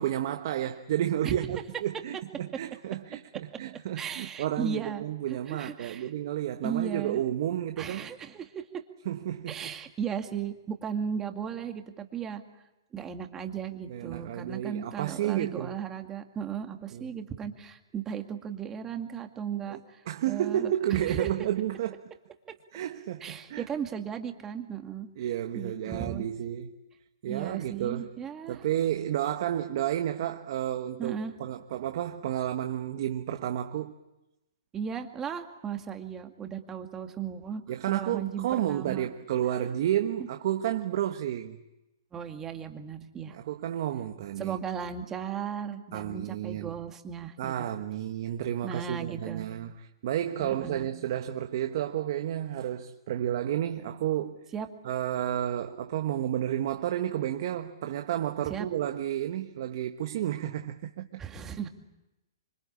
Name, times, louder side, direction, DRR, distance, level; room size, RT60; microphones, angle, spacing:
voice 1, 0.0-8.1 9.0-9.7 13.9-15.8 16.9-17.1 19.7-19.8 20.1-22.0 22.7-23.6 25.2-26.7 27.2-28.1 28.5-33.9 37.7-41.6 43.3-44.6 45.9-46.8 47.4-54.4 54.8-61.2, right 11 dB, 55° right, 1.3 m, -31 dB
voice 2, 1.2-1.6 4.0-5.0 5.3-6.1 6.6-7.2 7.8-8.6 9.5-12.4 12.9-20.0 20.3-21.3 23.2-25.1 25.5-26.3 27.3-28.6 31.0-31.3 34.7-37.6 37.9-39.1 42.1-43.4 44.4-47.7 48.6-49.5 50.4-50.9 54.5-54.7 58.5-58.7 61.2-61.7, right 7 dB, 15° right, 2.1 m, -36 dB
26.5 x 24.5 x 8.7 m
hypercardioid pair, 140°, 2 cm